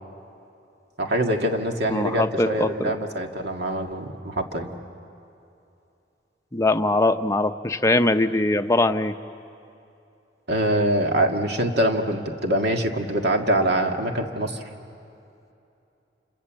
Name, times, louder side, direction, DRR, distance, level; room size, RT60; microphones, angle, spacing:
voice 1, 1.0-4.7 10.5-14.6, right 1 dB, 65° right, 3 dB, 2.0 m, -24 dB
voice 2, 1.9-2.9 6.5-9.1, left 2 dB, 15° left, 7 dB, 0.7 m, -21 dB
29.0 x 26.5 x 7.5 m, 2.7 s
head